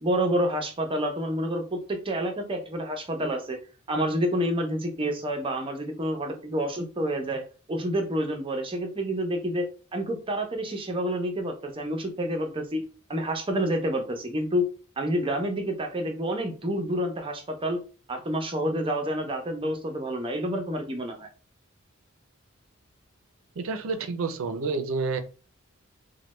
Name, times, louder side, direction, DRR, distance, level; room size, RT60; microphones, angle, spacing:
voice 1, 0.0-3.6 3.9-7.4 7.7-12.8 13.1-14.6 15.0-17.8 18.1-21.3, equal, 25° right, 4 dB, 0.6 m, -28 dB
voice 2, 23.6-25.2, right 4 dB, 70° right, 8 dB, 0.5 m, -29 dB
3.2 x 2.1 x 3.0 m, 0.36 s
head